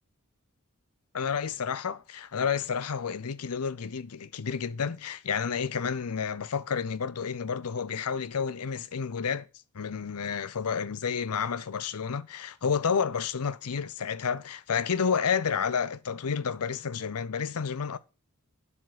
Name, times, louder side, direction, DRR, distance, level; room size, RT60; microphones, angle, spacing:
voice 1, 1.1-9.5 9.7-18.0, left 6 dB, 85° left, 0.6 m, -30 dB
12.0 x 7.1 x 4.2 m
head